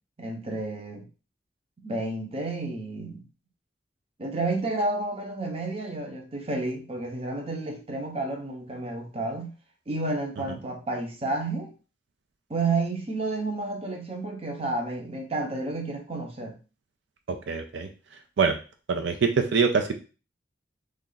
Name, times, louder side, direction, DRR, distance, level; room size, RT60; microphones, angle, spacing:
voice 1, 0.2-1.1 1.8-3.2 4.2-9.5 9.9-11.7 12.5-16.6, right 2 dB, 30° right, 2 dB, 0.7 m, -31 dB
voice 2, 17.3-17.9 18.4-18.6 18.9-19.9, right 5 dB, 75° right, 5 dB, 0.4 m, -24 dB
3.2 x 2.4 x 3.8 m, 0.34 s
head